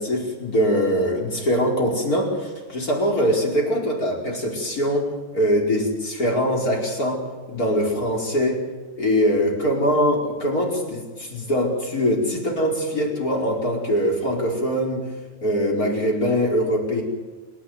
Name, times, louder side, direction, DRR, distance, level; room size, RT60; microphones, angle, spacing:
voice 1, 0.0-7.2 7.5-8.6 9.0-15.0 15.4-17.0, equal, 20° left, 0 dB, 4.9 m, -22 dB
28.0 x 13.0 x 9.6 m, 1.3 s
omnidirectional pair, 5.0 m